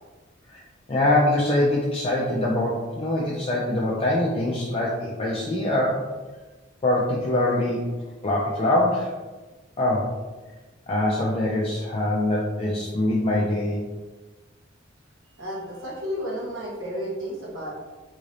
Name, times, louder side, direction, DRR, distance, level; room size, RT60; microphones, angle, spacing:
voice 1, 0.9-6.1 6.8-7.9 8.2-9.1 9.8-10.1 10.9-13.8, left 1 dB, 30° left, -4 dB, 0.5 m, -23 dB
voice 2, 15.4-17.7, equal, 70° right, -4 dB, 1.2 m, -32 dB
3.7 x 2.6 x 3.2 m, 1.2 s
head